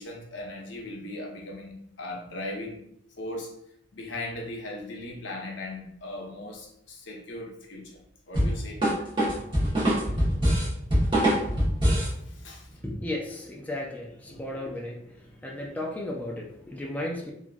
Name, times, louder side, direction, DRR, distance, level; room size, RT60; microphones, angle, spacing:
voice 1, 0.0-2.8 3.2-3.6 3.9-8.0 8.3-8.9 12.0-12.7 13.1-13.4 14.3-14.5, left 1 dB, 70° left, 0 dB, 0.7 m, -38 dB
sound 1, 8.3-12.2, equal, 25° right, 1.1 m, -23 dB
voice 2, 12.8-14.1 14.4-15.0 15.4-17.3, left 1 dB, 10° left, -1 dB, 0.3 m, -34 dB
2.9 x 2.4 x 2.5 m, 0.71 s
head